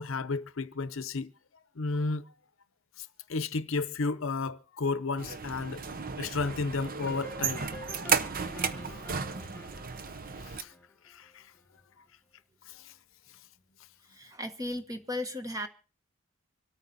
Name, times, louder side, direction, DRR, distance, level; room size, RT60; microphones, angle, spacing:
voice 1, 0.0-1.3 1.8-2.2 3.0-5.8 6.2-7.6 10.4-10.7 11.0-11.4 12.7-12.9, left 3 dB, 65° left, 0.7 m, -33 dB
sound 1, 5.2-10.6, right 5 dB, 45° right, 0.8 m, -34 dB
sound 2, 7.0-11.6, left 2 dB, 10° left, 1.0 m, -49 dB
voice 2, 14.1-15.7, left 1 dB, 15° right, 1.3 m, -36 dB
25.5 x 9.1 x 4.1 m
head